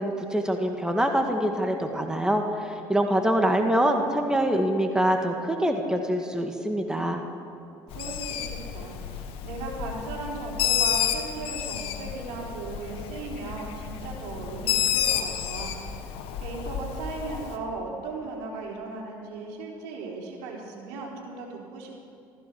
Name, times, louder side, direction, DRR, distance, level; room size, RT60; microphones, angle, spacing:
voice 1, 0.0-7.2, right 1 dB, 5° right, 3 dB, 1.8 m, -25 dB
Bird, 7.9-17.6, left 9 dB, 65° left, 1.6 m, -30 dB
voice 2, 7.9-15.7 16.4-22.0, right 3 dB, 75° right, -2 dB, 4.2 m, -37 dB
15.5 x 15.0 x 6.2 m, 2.7 s
supercardioid pair, 75°, 10 cm